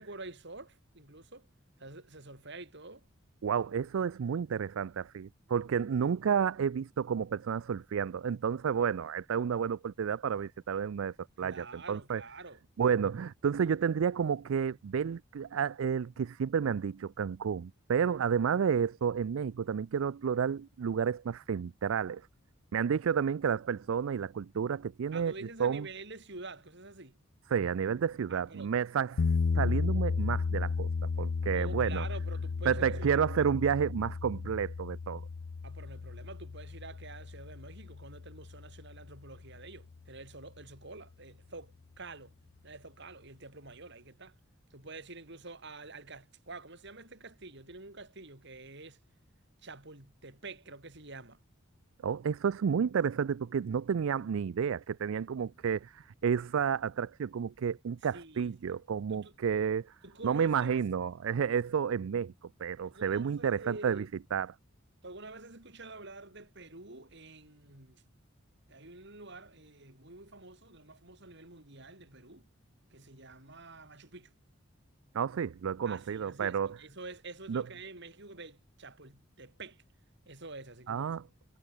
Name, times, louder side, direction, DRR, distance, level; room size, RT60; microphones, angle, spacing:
voice 1, 0.0-1.5 1.8-3.1 11.4-12.6 25.1-27.2 28.3-28.7 31.5-33.3 35.6-42.3 42.6-44.3 44.7-49.0 49.6-51.4 58.1-58.6 59.1-59.3 60.0-60.9 62.8-64.1 65.0-68.0 68.7-72.4 72.9-74.3 75.9-79.8 80.3-81.1, right 3 dB, 60° right, 7.3 m, -48 dB
voice 2, 3.4-12.2 12.8-22.2 22.7-25.3 25.6-25.9 27.5-29.3 29.5-30.9 31.2-32.1 32.7-35.2 52.0-59.9 60.2-62.3 62.6-64.0 64.3-64.5 75.1-76.7 77.5-77.6 80.9-81.2, right 7 dB, 85° right, 0.4 m, -31 dB
sound 1, 29.2-39.2, left 4 dB, 75° left, 0.5 m, -34 dB
head